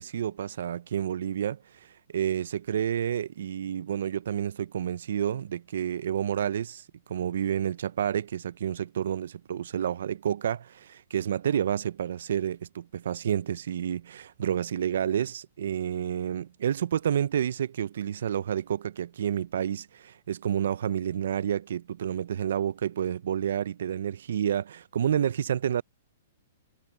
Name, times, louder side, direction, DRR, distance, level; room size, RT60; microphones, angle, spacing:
voice 1, 0.0-1.6 2.1-25.8, right 9 dB, 75° right, 0.4 m, -29 dB
hypercardioid pair, 155°, 0 cm